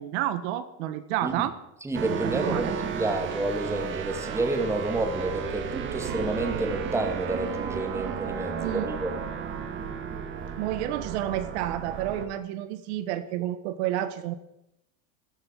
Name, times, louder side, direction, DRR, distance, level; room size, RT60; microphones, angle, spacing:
voice 1, 0.0-1.5 2.2-2.8 8.6-8.9 10.6-14.3, right 12 dB, 65° right, 11 dB, 1.5 m, -30 dB
voice 2, 1.2-1.5 1.8-9.1, right 2 dB, 5° right, 4 dB, 2.3 m, -30 dB
sound 1, 1.9-12.3, right 7 dB, 30° right, 2.0 m, -33 dB
14.0 x 14.0 x 7.5 m, 0.86 s
supercardioid pair, 155°, 37 cm